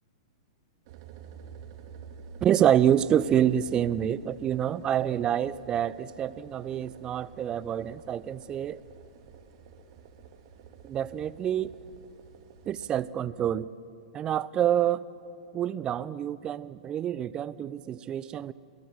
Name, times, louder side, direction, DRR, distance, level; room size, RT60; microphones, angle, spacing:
sound 1, 0.9-13.0, right 6 dB, 45° right, 2.3 m, -50 dB
voice 1, 2.4-8.8 10.8-11.7 12.7-13.7 14.1-15.1 15.5-18.5, right 10 dB, 25° right, 19 dB, 0.6 m, -27 dB
27.5 x 17.5 x 8.0 m, 2.6 s
figure-of-eight pair, 105°, 3 cm